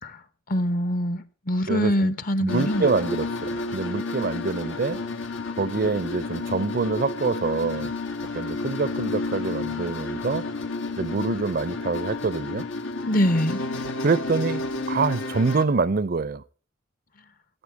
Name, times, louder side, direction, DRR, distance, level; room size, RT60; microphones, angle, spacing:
voice 1, 0.5-2.9 13.1-13.6, equal, 45° left, 1.0 m, -24 dB
voice 2, 1.7-2.1 2.4-5.0 5.6-7.9 8.3-10.4 11.0-12.7 14.0-16.4, right 4 dB, 45° right, 0.5 m, -26 dB
sound 1, 2.5-15.7, left 3 dB, 80° left, 1.4 m, -31 dB
15.0 x 8.9 x 4.6 m
head